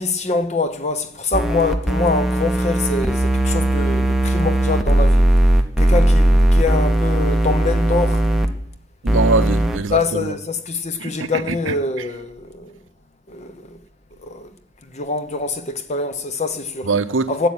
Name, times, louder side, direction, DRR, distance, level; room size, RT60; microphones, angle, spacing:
voice 1, 0.0-5.3 5.8-8.2 9.9-12.8 13.3-13.8 14.2-14.5 14.9-16.9 17.3-17.5, left 3 dB, 35° left, 0.9 m, -24 dB
sound 1, 1.3-8.5 9.1-9.8, right 1 dB, ahead, 0.8 m, -17 dB
voice 2, 9.0-10.3 11.0-11.7 16.8-17.3, right 3 dB, 80° right, 0.7 m, -22 dB
12.0 x 7.5 x 8.8 m
head